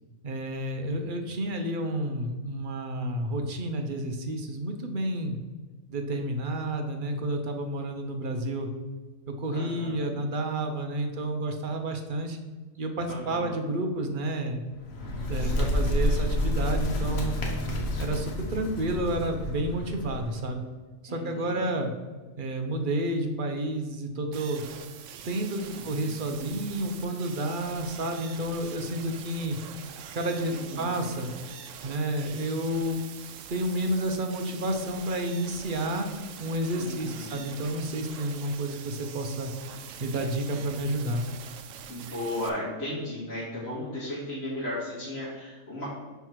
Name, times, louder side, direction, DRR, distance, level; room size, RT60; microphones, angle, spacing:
voice 1, 0.2-5.4 5.9-8.7 9.3-12.4 12.8-14.6 15.1-17.4 18.0-20.6 21.0-21.9 22.4-24.6 25.2-29.6 30.1-31.3 31.8-33.0 33.5-36.1 36.4-39.5 40.0-41.2, right 1 dB, 45° right, 4 dB, 0.8 m, -30 dB
voice 2, 9.5-10.2 13.1-13.6 15.4-16.2 21.1-21.7 25.8-26.2 30.5-31.0 36.8-37.5 41.9-45.8, left 1 dB, 50° left, -10 dB, 2.0 m, -36 dB
Bird, 14.7-20.5, left 1 dB, 90° left, 1.5 m, -29 dB
sound 1, 24.3-42.5, right 8 dB, 75° right, 1.0 m, -44 dB
5.7 x 4.5 x 4.6 m, 1.3 s
omnidirectional pair, 1.4 m